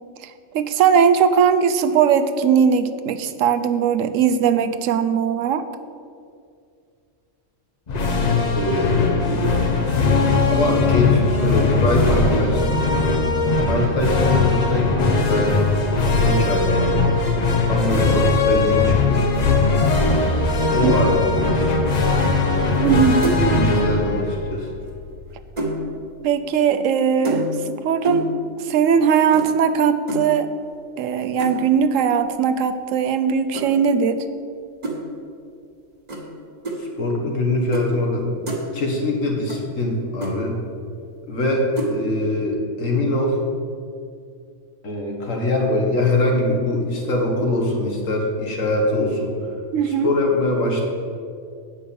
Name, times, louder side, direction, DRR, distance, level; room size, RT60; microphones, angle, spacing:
voice 1, 0.2-5.7 20.8-20.9 22.8-23.4 26.2-28.3 28.6-30.5 31.0-34.2 49.7-50.1, right 7 dB, 80° right, 10 dB, 1.0 m, -19 dB
sound 1, 7.9-25.3, left 3 dB, 40° left, 0.8 m, -20 dB
voice 2, 8.5-9.5 10.5-12.8 13.6-15.6 16.2-17.0 17.7-19.3 20.7-21.7 22.5-22.8 23.5-24.7 36.8-38.4 38.7-40.5 41.3-43.4 44.8-49.3 49.9-50.8, left 1 dB, 80° left, 0 dB, 1.9 m, -23 dB
sound 2, 22.7-23.0 23.2-23.6 24.8-25.8 27.2-27.7 28.0-28.4 29.3-29.5 30.1-30.3 31.4-31.7 33.5-33.7 34.8-35.0 36.1-36.2 36.6-36.8 37.7-37.9 38.2-38.6 39.5-39.6 39.9-40.0 40.2-40.3 41.8-42.0, right 1 dB, 35° right, 1.4 m, -27 dB
8.5 x 5.4 x 7.0 m, 2.3 s
omnidirectional pair, 1.3 m